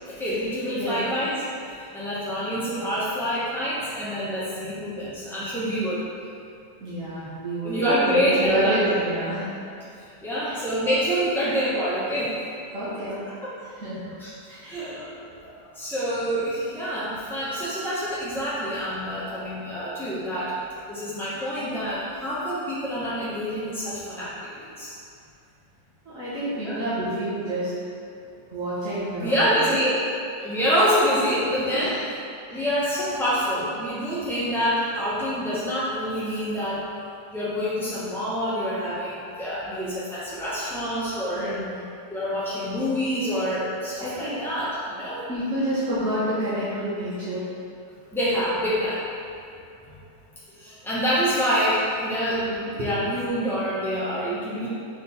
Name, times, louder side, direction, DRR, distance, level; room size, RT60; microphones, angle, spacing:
voice 1, 0.1-1.3 1.7-6.0 7.6-8.8 9.9-12.4 14.2-14.3 14.7-20.5 20.9-24.9 26.6-26.8 29.2-30.0 30.4-32.0 32.5-36.9 37.3-41.6 42.1-45.2 48.1-49.0 49.5-50.0 50.5-54.7, equal, 5° left, -10 dB, 0.3 m, -26 dB
voice 2, 6.8-7.8 8.0-9.6 10.4-10.6 12.7-13.2 13.8-14.0 14.5-14.8 21.6-21.7 26.0-27.7 28.5-29.5 31.7-32.0 32.5-32.7 41.3-41.8 44.0-44.4 45.3-47.4 52.4-52.6, right 1 dB, 45° right, -12 dB, 1.5 m, -29 dB
4.7 x 4.4 x 5.5 m, 2.5 s
omnidirectional pair, 2.1 m